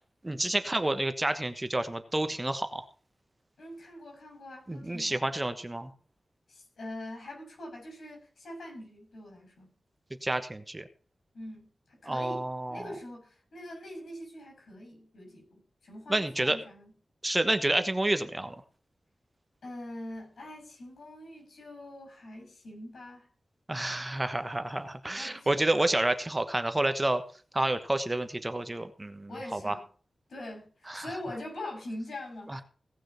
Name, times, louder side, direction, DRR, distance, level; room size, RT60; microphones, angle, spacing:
voice 1, 0.2-2.8 4.7-5.9 10.2-10.8 12.1-12.8 16.1-16.6 17.2-18.5 23.7-27.2 27.5-29.7 30.9-31.1 32.5-32.6, right 1 dB, 20° right, 9 dB, 1.2 m, -29 dB
voice 2, 3.6-5.3 6.5-9.7 11.3-12.4 12.7-16.9 19.6-23.3 25.1-25.7 29.3-29.9 30.3-32.6, left 1 dB, 80° left, 1 dB, 7.4 m, -43 dB
18.0 x 6.3 x 5.7 m, 0.41 s
wide cardioid pair, 85°, 0 cm